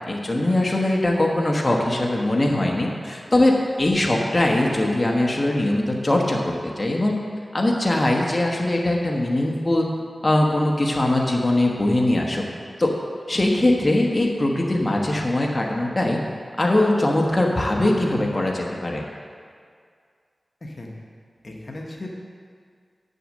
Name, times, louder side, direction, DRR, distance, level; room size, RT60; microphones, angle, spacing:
voice 1, 0.1-7.2 7.5-9.9 10.2-12.4 12.8-12.9 13.3-16.2 16.6-19.0, left 1 dB, 30° left, -1 dB, 1.2 m, -21 dB
voice 2, 20.6-20.9 21.4-22.1, left 2 dB, 55° left, -1 dB, 1.2 m, -36 dB
6.6 x 6.4 x 7.5 m, 2.1 s
cardioid pair, 55°, 0 cm